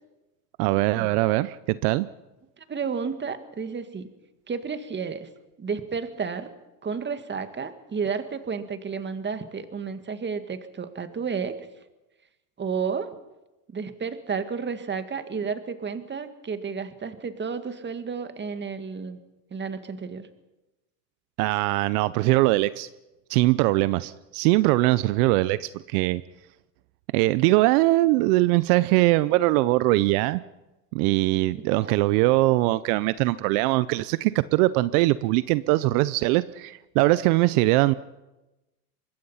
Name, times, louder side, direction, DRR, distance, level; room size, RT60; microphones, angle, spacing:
voice 1, 0.6-2.1 21.4-22.9 23.3-26.2 27.1-30.4 30.9-37.9, right 19 dB, 75° right, 17 dB, 0.8 m, -21 dB
voice 2, 2.6-4.1 4.5-5.3 5.6-6.5 6.8-11.7 12.6-13.1 13.7-19.2 19.5-20.3 31.6-32.0, right 5 dB, 25° right, 10 dB, 2.0 m, -32 dB
25.0 x 21.0 x 5.7 m, 1.0 s
supercardioid pair, 110°, 46 cm